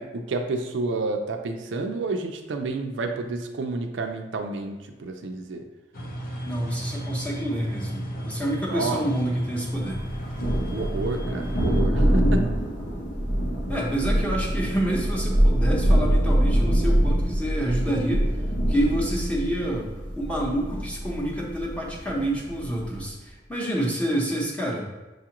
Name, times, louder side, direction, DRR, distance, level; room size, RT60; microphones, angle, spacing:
voice 1, 0.0-5.6 8.6-9.1 10.7-12.4, right 3 dB, 80° right, 4 dB, 0.5 m, -30 dB
sound 1, 5.9-11.8, equal, 50° left, 0.6 m, -35 dB
voice 2, 6.4-10.0 13.7-18.3 18.7-24.9, right 1 dB, 5° left, -3 dB, 0.8 m, -28 dB
Thunder, 9.9-23.1, equal, 75° left, 0.9 m, -24 dB
6.4 x 2.4 x 2.9 m, 1.2 s
head